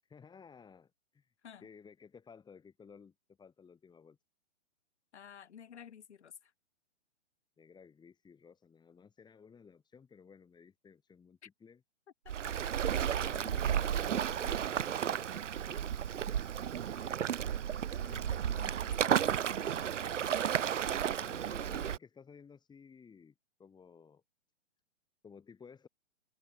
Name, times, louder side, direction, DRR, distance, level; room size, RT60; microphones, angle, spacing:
voice 1, 0.0-1.3 1.6-4.2 7.6-11.8 13.2-16.8 21.2-23.3 23.6-24.2 25.2-25.9, left 6 dB, 10° left, 7.8 m, -56 dB
voice 2, 5.1-6.5 11.4-11.5 12.2-12.5 13.3-13.4 18.0-20.1, left 8 dB, 70° left, 3.3 m, -53 dB
Waves surf, 12.3-22.0, right 9 dB, 85° right, 0.6 m, -33 dB
hypercardioid pair, 130°, 36 cm